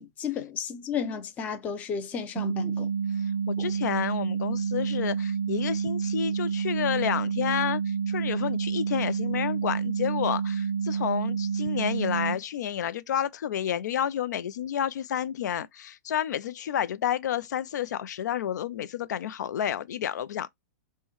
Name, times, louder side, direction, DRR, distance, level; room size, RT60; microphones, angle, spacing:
voice 1, 0.0-2.9 3.6-3.7, left 7 dB, 15° left, 0.5 m, -33 dB
sound 1, 2.4-12.4, right 6 dB, 55° right, 0.4 m, -29 dB
voice 2, 3.5-20.5, left 9 dB, 80° left, 0.4 m, -30 dB
5.4 x 2.1 x 3.0 m
supercardioid pair, 165°, 9 cm